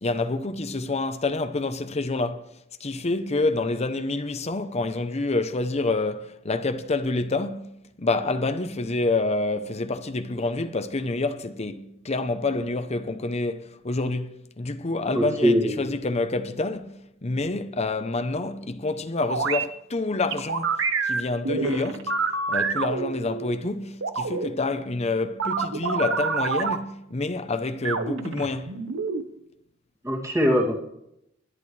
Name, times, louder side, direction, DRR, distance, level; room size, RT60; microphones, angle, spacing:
voice 1, 0.0-2.5 2.8-22.1 22.5-28.7, left 2 dB, 35° left, 0.7 m, -28 dB
voice 2, 15.1-15.9 30.0-30.7, equal, 15° right, 2.5 m, -22 dB
sound 1, 19.3-19.6 20.3-23.5 24.0-24.5 25.4-26.8 27.8-29.2, right 4 dB, 70° right, 1.1 m, -27 dB
21.0 x 11.0 x 3.3 m
head